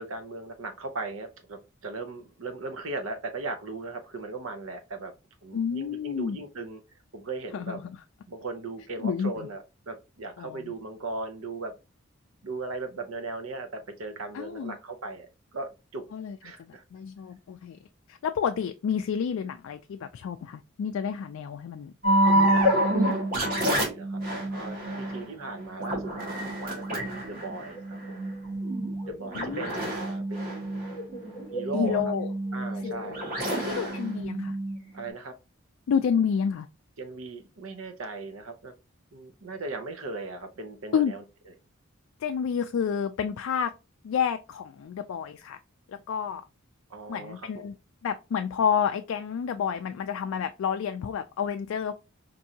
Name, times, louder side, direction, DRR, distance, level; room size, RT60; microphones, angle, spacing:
voice 1, 0.0-5.1 5.4-6.8 7.1-7.8 8.3-11.7 12.4-16.0 16.4-16.8 22.4-22.9 23.5-24.2 24.5-28.2 29.1-30.8 31.5-32.0 32.5-34.0 34.9-35.3 37.0-38.7 39.1-41.2 46.9-47.7, right 3 dB, 85° right, 0.8 m, -38 dB
voice 2, 5.5-6.4 7.5-8.0 9.0-9.5 10.4-10.7 14.3-14.8 16.1-17.8 18.1-21.9 22.3-22.8 29.3-29.7 31.7-32.3 32.8-32.9 33.6-34.6 35.9-36.7 40.9-41.1 42.2-43.7 44.0-45.6 45.9-46.4 47.1-47.7 48.0-51.9, left 7 dB, 70° left, 0.3 m, -30 dB
sound 1, 22.0-35.1, right 1 dB, 45° right, 1.6 m, -28 dB
4.6 x 2.6 x 2.7 m
head